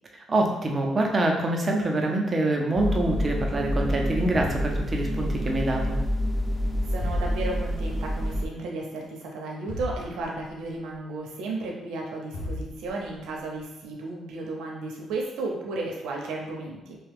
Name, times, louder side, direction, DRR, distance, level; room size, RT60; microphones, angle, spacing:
voice 1, 0.3-6.0, right 2 dB, 30° right, 1 dB, 0.6 m, -25 dB
sound 1, 2.7-8.5, equal, 10° left, 0.5 m, -28 dB
sound 2, 4.3-5.5 7.0-7.9 9.7-10.8 12.3-13.3, left 1 dB, 90° left, 0.6 m, -37 dB
voice 2, 6.9-17.0, right 2 dB, 90° right, -1 dB, 0.7 m, -34 dB
3.3 x 2.3 x 3.4 m, 0.94 s
cardioid pair, 90°, 0 cm